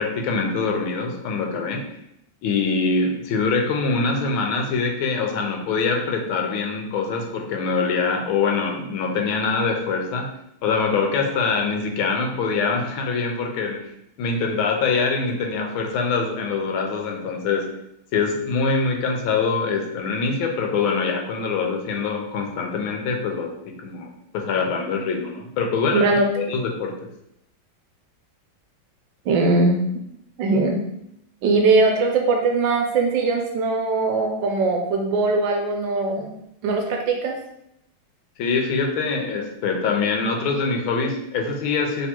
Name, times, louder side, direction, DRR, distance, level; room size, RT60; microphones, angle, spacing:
voice 1, 0.0-1.8 2.4-10.3 10.6-13.9 14.2-17.7 18.1-26.0 26.4-26.9 38.4-42.1, left 4 dB, 85° left, 2 dB, 1.5 m, -24 dB
voice 2, 25.9-26.3 29.3-29.8 30.4-30.8 31.4-36.3 36.6-37.3, right 3 dB, 75° right, 2 dB, 1.2 m, -20 dB
3.4 x 3.0 x 4.3 m, 0.79 s
omnidirectional pair, 2.3 m